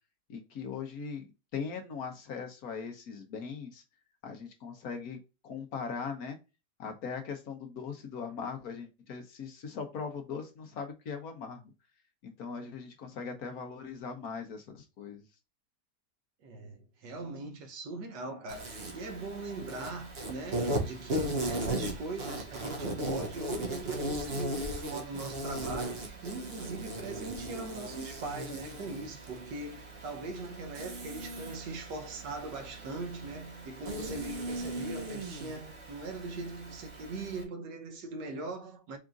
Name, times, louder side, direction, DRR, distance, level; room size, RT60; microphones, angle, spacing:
voice 1, 0.3-3.8 4.2-6.4 6.8-11.7 12.2-15.3, left 5 dB, 60° left, 1.4 m, -40 dB
voice 2, 16.4-39.0, right 3 dB, 85° right, 1.6 m, -40 dB
Insect, 18.5-37.4, right 1 dB, 40° right, 1.2 m, -37 dB
5.0 x 3.6 x 2.5 m
omnidirectional pair, 1.8 m